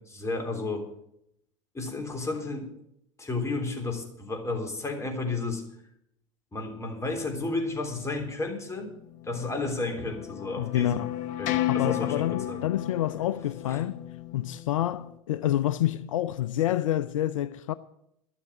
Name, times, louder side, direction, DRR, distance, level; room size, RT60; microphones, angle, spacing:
voice 1, 0.1-0.9 1.7-2.7 3.2-5.6 6.5-8.9 9.2-11.0 11.4-12.7 13.7-13.8, left 3 dB, 15° left, 3.4 m, -32 dB
sound 1, 9.2-15.2, left 14 dB, 50° left, 1.0 m, -34 dB
voice 2, 10.6-11.1 11.7-14.0 14.3-17.7, left 12 dB, 80° left, 0.5 m, -28 dB
12.0 x 7.4 x 9.0 m
hypercardioid pair, 90°, 16 cm